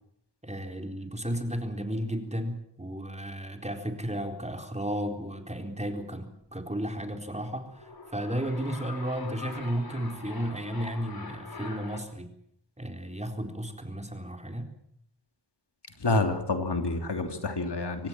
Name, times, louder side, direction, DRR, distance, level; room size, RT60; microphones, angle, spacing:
voice 1, 0.4-12.3 12.8-14.7, right 1 dB, 15° right, 5 dB, 4.1 m, -33 dB
sound 1, 7.7-12.0, left 3 dB, 60° left, 4.0 m, -43 dB
voice 2, 16.0-18.1, left 2 dB, 85° left, 6 dB, 3.2 m, -28 dB
24.5 x 18.5 x 7.6 m, 0.72 s
wide cardioid pair, 60°, 40 cm